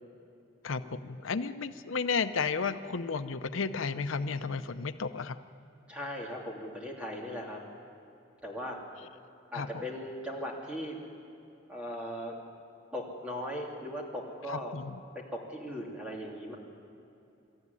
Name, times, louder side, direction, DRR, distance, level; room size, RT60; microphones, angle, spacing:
voice 1, 0.6-5.4 9.5-9.8 14.5-15.0, left 5 dB, 80° left, 10 dB, 0.7 m, -33 dB
voice 2, 5.9-7.6 8.4-8.8 9.5-11.0 11.7-12.4 12.9-14.7 15.1-16.6, equal, 5° right, -2 dB, 3.0 m, -38 dB
25.0 x 13.5 x 9.7 m, 2.8 s
head